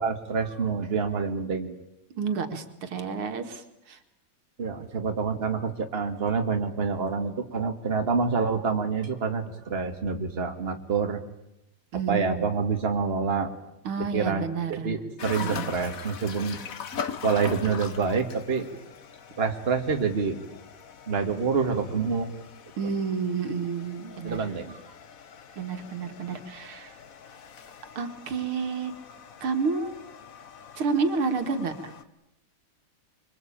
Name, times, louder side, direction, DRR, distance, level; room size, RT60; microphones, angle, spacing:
voice 1, 0.0-1.7 4.6-11.2 12.1-13.5 14.1-14.5 14.8-16.6 17.2-18.7 19.4-20.4 21.1-22.3 24.2-24.8, right 5 dB, 30° right, 5 dB, 2.1 m, -27 dB
voice 2, 2.2-4.0 11.9-12.5 13.8-15.0 15.4-15.7 22.8-24.4 25.6-26.9 28.0-28.9 29.4-29.9 30.8-31.9, right 5 dB, 80° right, 7 dB, 2.8 m, -30 dB
sound 1, 15.2-32.0, left 6 dB, 45° left, 1.4 m, -42 dB
25.0 x 24.0 x 8.8 m, 0.85 s
omnidirectional pair, 2.3 m